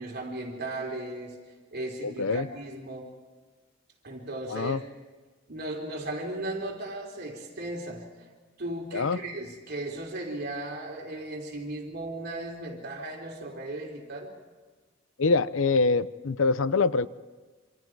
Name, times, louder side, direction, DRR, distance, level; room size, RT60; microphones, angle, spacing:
voice 1, 0.0-1.4 1.7-3.1 4.0-4.8 5.5-8.1 8.6-14.3, right 2 dB, 55° right, 1 dB, 3.6 m, -36 dB
voice 2, 2.0-2.5 4.5-4.8 8.9-9.2 15.2-17.1, left 4 dB, 90° left, 15 dB, 0.7 m, -24 dB
26.5 x 26.0 x 4.7 m, 1.4 s
head